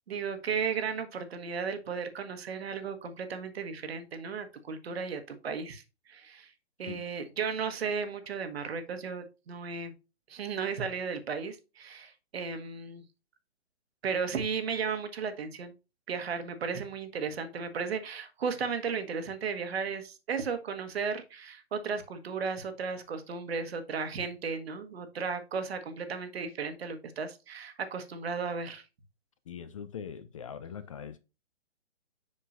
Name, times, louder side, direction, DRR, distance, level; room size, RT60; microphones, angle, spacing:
voice 1, 0.1-6.5 6.8-9.9 10.3-13.0 14.0-15.7 16.1-28.8, right 5 dB, 65° right, 1.4 m, -35 dB
voice 2, 29.5-31.2, left 8 dB, 30° left, 0.4 m, -42 dB
7.5 x 5.9 x 2.5 m
hypercardioid pair, 145°, 33 cm